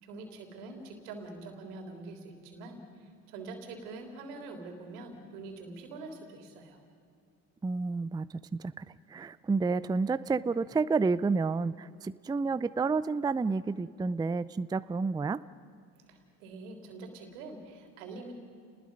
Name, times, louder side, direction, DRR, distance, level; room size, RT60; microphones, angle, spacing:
voice 1, 0.0-6.8 16.1-18.3, right 3 dB, 85° right, 4 dB, 3.4 m, -45 dB
voice 2, 7.6-8.8 9.1-15.4, right 4 dB, 10° right, 15 dB, 0.4 m, -30 dB
29.5 x 20.0 x 5.3 m, 2.4 s
hypercardioid pair, 70°, 44 cm